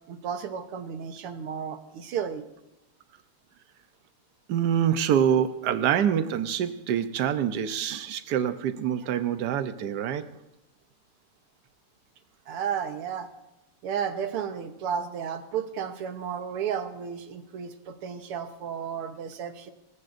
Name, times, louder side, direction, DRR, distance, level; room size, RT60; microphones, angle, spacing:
voice 1, 0.1-2.4 12.5-13.3 13.8-19.7, right 7 dB, 85° right, 2.0 m, -33 dB
voice 2, 4.5-10.3, right 9 dB, 65° right, 1.2 m, -25 dB
23.5 x 15.0 x 2.6 m
omnidirectional pair, 2.4 m